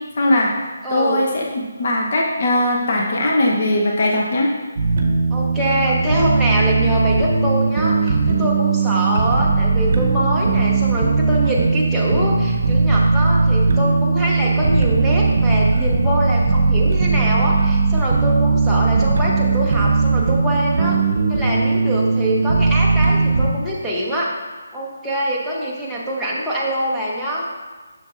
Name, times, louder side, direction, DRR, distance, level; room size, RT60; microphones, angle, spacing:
voice 1, 0.2-0.5 0.9-4.5, left 1 dB, 45° left, -1 dB, 0.9 m, -19 dB
voice 2, 0.8-1.3 5.3-21.0 21.3-24.3 24.7-27.4, equal, ahead, -9 dB, 0.8 m, -24 dB
sound 1, 4.8-23.5, right 4 dB, 55° right, 0.8 m, -18 dB
7.3 x 6.3 x 2.5 m, 1.3 s
hypercardioid pair, 165°, 0 cm